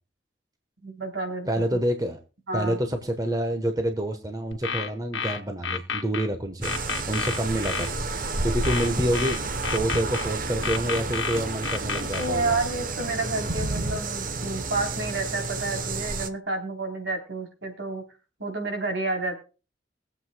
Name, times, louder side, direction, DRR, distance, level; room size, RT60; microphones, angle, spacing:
voice 1, 0.8-1.8 2.5-2.8 12.0-18.0 18.4-19.4, right 2 dB, 75° right, 3 dB, 3.6 m, -30 dB
voice 2, 1.5-2.2 2.5-6.7 7.1-7.9 8.4-9.4 9.7-12.6, right 1 dB, 20° right, 5 dB, 1.1 m, -27 dB
sound 1, 4.5-6.3 6.6-7.9 8.6-10.3 10.6-12.3, left 6 dB, 80° left, 1.3 m, -30 dB
sound 2, 6.6-16.3, right 3 dB, 45° right, 0.9 m, -31 dB
22.5 x 7.9 x 2.2 m, 0.32 s
head